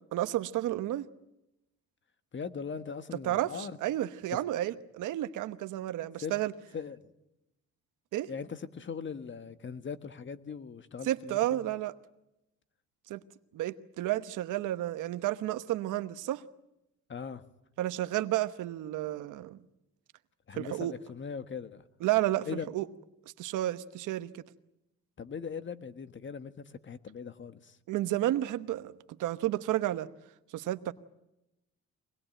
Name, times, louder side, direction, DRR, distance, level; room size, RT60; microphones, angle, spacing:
voice 1, 0.1-1.1 3.2-3.5 3.8-6.5 8.1-8.3 11.0-11.9 13.1-13.2 13.5-16.4 17.8-19.6 20.6-20.9 22.0-22.5 22.7-22.9 23.4-24.4 27.9-28.9 29.2-30.1 30.5-30.9, right 14 dB, 85° right, 1.1 m, -31 dB
voice 2, 2.3-3.8 4.3-4.4 6.2-6.4 6.7-7.1 8.3-11.7 17.1-17.4 20.5-21.8 22.4-22.7 25.2-27.8, left 6 dB, 40° left, 1.5 m, -40 dB
24.5 x 19.5 x 9.0 m
cardioid pair, 90°, 30 cm